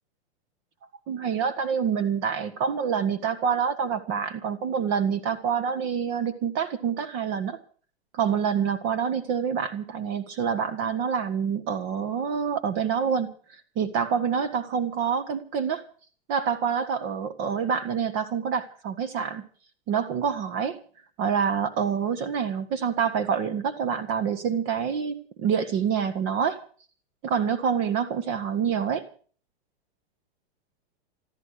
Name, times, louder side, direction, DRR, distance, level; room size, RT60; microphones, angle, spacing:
voice 1, 1.1-7.6 8.1-15.8 16.3-19.4 19.9-20.8 21.2-26.6 27.2-29.1, right 7 dB, 40° right, 10 dB, 1.6 m, -27 dB
15.0 x 13.5 x 6.7 m, 0.43 s
hypercardioid pair, 135°, 32 cm